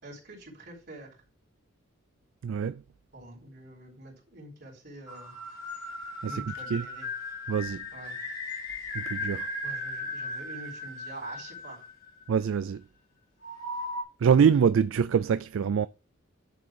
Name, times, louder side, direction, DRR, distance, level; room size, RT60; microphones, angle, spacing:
voice 1, 0.0-1.2 3.1-5.4 6.2-7.1 7.9-8.2 9.6-11.8, right 1 dB, 50° right, 3.9 m, -45 dB
voice 2, 2.4-2.8 6.2-6.4 6.7-6.8 7.5-7.8 8.9-9.5 12.3-12.8 14.2-15.9, right 7 dB, 70° right, 0.3 m, -24 dB
sound 1, 5.1-12.3 13.4-14.0, left 2 dB, 90° left, 3.4 m, -37 dB
10.5 x 3.8 x 6.3 m
head